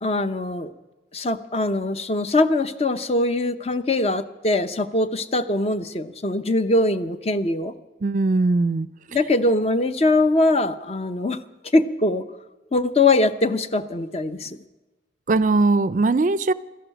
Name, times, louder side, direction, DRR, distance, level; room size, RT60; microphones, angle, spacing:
voice 1, 0.0-0.7 1.1-7.7 9.1-11.4 11.7-12.2 12.7-14.6, left 2 dB, 35° left, 0.7 m, -22 dB
voice 2, 8.0-8.9 15.3-16.5, right 3 dB, 45° right, 0.4 m, -20 dB
13.5 x 11.0 x 8.9 m
head